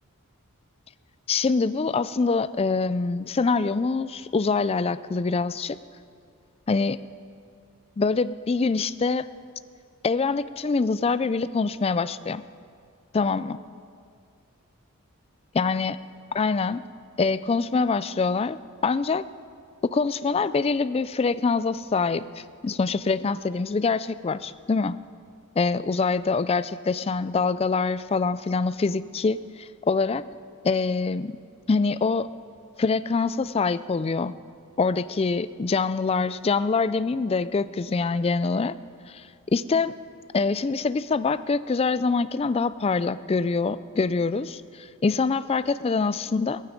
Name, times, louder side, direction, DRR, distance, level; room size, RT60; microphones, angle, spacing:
voice 1, 1.3-5.8 6.7-7.0 8.0-9.3 10.0-12.4 13.1-13.6 15.5-16.0 16.3-16.8 17.2-18.6 18.8-19.2 19.9-25.0 25.6-30.2 30.6-31.4 31.7-32.3 32.8-34.3 34.8-38.8 39.1-39.2 39.5-39.9 40.3-46.6, left 4 dB, 25° left, 15 dB, 0.3 m, -25 dB
18.0 x 15.0 x 5.2 m, 2.2 s
head